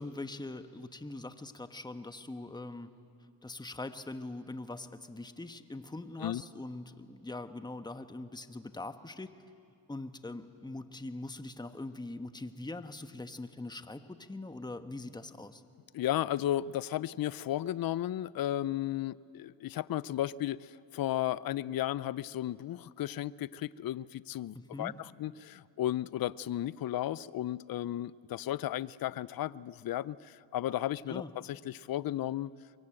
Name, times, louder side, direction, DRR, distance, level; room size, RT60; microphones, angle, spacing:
voice 1, 0.0-2.9 3.4-9.3 9.9-15.6 24.5-24.9 31.1-31.3, left 2 dB, 10° left, 10 dB, 1.2 m, -42 dB
voice 2, 15.9-32.5, left 13 dB, 50° left, 20 dB, 0.6 m, -34 dB
23.5 x 23.0 x 8.9 m, 2.5 s
cardioid pair, 75°, 46 cm